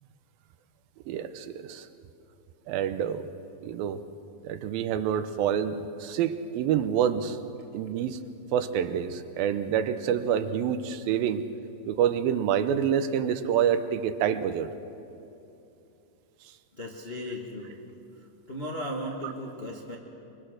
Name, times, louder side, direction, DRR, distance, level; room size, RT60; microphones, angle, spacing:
voice 1, 1.1-1.9 2.7-3.3 3.6-4.0 4.4-7.4 7.7-11.5 11.9-14.7, right 9 dB, 85° right, 11 dB, 2.6 m, -27 dB
voice 2, 16.8-17.8 18.1-20.0, equal, 40° left, -1 dB, 0.8 m, -36 dB
24.5 x 23.0 x 6.5 m, 2.7 s
omnidirectional pair, 4.0 m